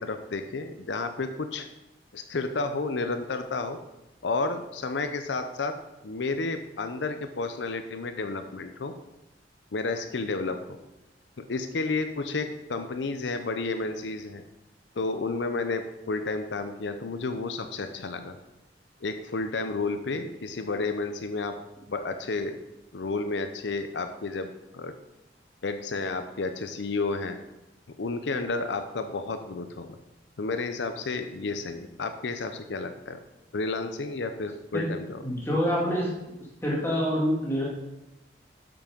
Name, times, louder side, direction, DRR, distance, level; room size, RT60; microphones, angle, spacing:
voice 1, 0.0-1.7 2.1-3.8 4.2-5.7 6.0-8.9 9.7-10.6 11.4-14.4 15.0-18.4 19.0-21.6 21.9-22.6 22.9-24.9 25.6-27.4 28.0-29.9 30.4-33.2 33.5-35.2, left 3 dB, 85° left, 7 dB, 0.6 m, -31 dB
voice 2, 35.2-36.2 36.6-37.7, equal, 15° left, -4 dB, 2.2 m, -26 dB
8.6 x 6.0 x 5.1 m, 0.95 s
head